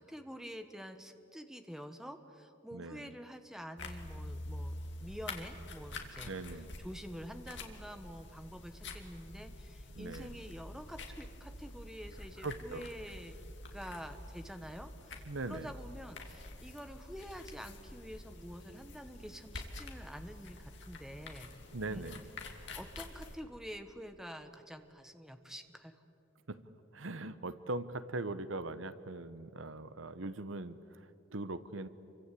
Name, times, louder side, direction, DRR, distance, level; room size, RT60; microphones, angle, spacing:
voice 1, 0.0-6.3 6.8-13.4 13.7-21.5 21.9-22.0 22.5-26.0, equal, 5° right, 7 dB, 1.3 m, -47 dB
voice 2, 2.7-3.1 6.2-6.7 9.9-10.3 12.4-12.9 15.3-15.7 21.7-22.3 26.5-26.6 26.9-31.9, right 2 dB, 85° right, 13 dB, 1.1 m, -41 dB
sound 1, 3.8-23.4, left 2 dB, 60° left, 2.8 m, -47 dB
28.5 x 24.5 x 8.5 m, 2.8 s
head